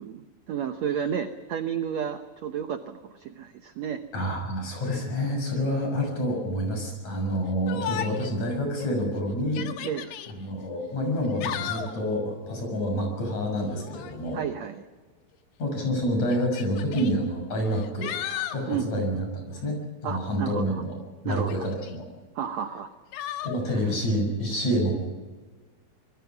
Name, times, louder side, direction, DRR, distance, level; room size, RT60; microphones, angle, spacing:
voice 1, 0.0-4.0 9.8-10.1 14.3-14.8 18.7-18.9 20.0-20.8 21.2-21.6 22.3-22.9 23.7-23.8, right 8 dB, 80° right, 7 dB, 1.5 m, -32 dB
voice 2, 4.1-9.7 10.3-14.4 15.6-18.1 18.5-20.9 21.2-22.1 23.4-24.9, equal, 45° left, 3 dB, 7.7 m, -28 dB
Yell, 7.7-8.4 8.8-8.9 9.4-10.3 11.2-12.0 13.7-14.2 15.3-15.4 16.3-17.1 17.7-18.6 21.3-22.0 23.1-23.6, left 10 dB, 80° left, 3.5 m, -35 dB
26.5 x 22.0 x 6.0 m, 1.4 s
omnidirectional pair, 4.6 m